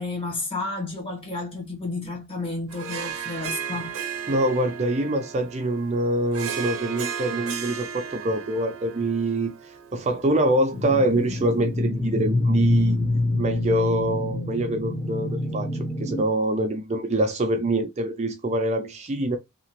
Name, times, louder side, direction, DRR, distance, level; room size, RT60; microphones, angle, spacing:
voice 1, 0.0-3.9, left 3 dB, 25° left, 1.1 m, -31 dB
Harp, 2.7-11.3, right 7 dB, 80° right, 0.7 m, -35 dB
voice 2, 4.3-9.5 9.9-13.0 13.4-15.7 16.0-19.4, right 1 dB, 30° right, 0.4 m, -25 dB
sound 1, 10.7-16.2, left 2 dB, 5° left, 0.7 m, -26 dB
2.8 x 2.4 x 2.9 m
head